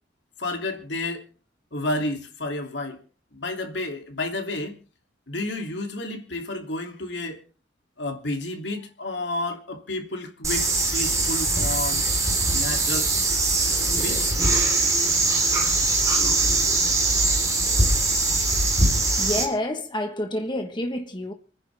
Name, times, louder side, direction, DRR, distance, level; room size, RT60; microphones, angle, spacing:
voice 1, 0.4-1.2 1.7-3.0 3.3-4.8 5.3-7.4 8.0-12.1 12.5-13.1 13.9-14.4, left 2 dB, 70° left, 2.8 m, -31 dB
sound 1, 10.4-19.4, right 2 dB, 15° right, 3.9 m, -22 dB
voice 2, 19.2-21.3, left 1 dB, 25° left, 1.3 m, -28 dB
28.5 x 10.0 x 3.5 m
head